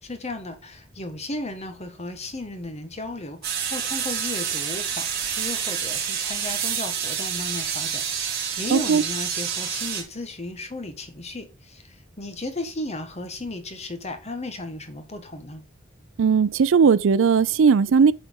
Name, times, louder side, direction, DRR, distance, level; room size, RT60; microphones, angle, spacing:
voice 1, 0.0-15.6, left 2 dB, 35° left, 1.4 m, -35 dB
sound 1, 3.4-10.0, right 7 dB, 50° right, 2.6 m, -28 dB
voice 2, 8.7-9.0 16.2-18.1, right 6 dB, 70° right, 0.4 m, -18 dB
8.2 x 4.4 x 5.2 m
head